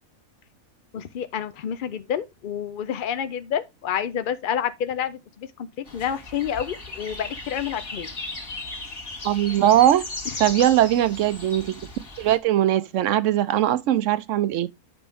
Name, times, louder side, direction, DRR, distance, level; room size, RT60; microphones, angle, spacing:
voice 1, 0.9-8.2, left 9 dB, 75° left, 0.4 m, -29 dB
sound 1, 5.9-12.4, left 3 dB, 40° left, 1.9 m, -36 dB
voice 2, 9.2-10.0 10.4-11.8 12.2-14.7, right 12 dB, 70° right, 0.9 m, -20 dB
10.0 x 5.2 x 3.4 m
omnidirectional pair, 1.5 m